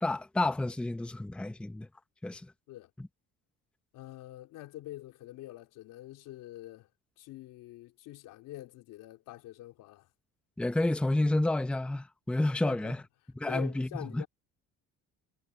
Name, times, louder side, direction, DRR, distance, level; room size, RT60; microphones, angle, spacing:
voice 1, 0.0-1.9 2.2-2.5 3.0-3.1 10.6-13.0 13.4-14.2, left 2 dB, 5° left, 0.7 m, -30 dB
voice 2, 3.9-6.9 7.2-10.1 12.6-12.9 13.5-14.3, left 15 dB, 85° left, 3.4 m, -45 dB
cardioid pair, 170°, 31 cm